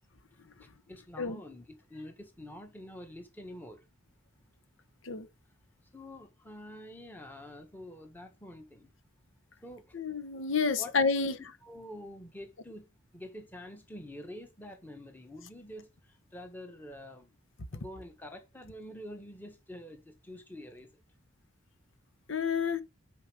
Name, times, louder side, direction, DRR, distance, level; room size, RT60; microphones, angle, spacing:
voice 1, 0.6-3.8 5.9-8.9 9.6-9.8 10.8-10.9 11.2-17.3 17.7-20.9, left 1 dB, 10° left, 1.6 m, -47 dB
voice 2, 9.9-11.3 22.3-22.8, left 5 dB, 70° left, 0.9 m, -29 dB
9.5 x 4.7 x 5.1 m
head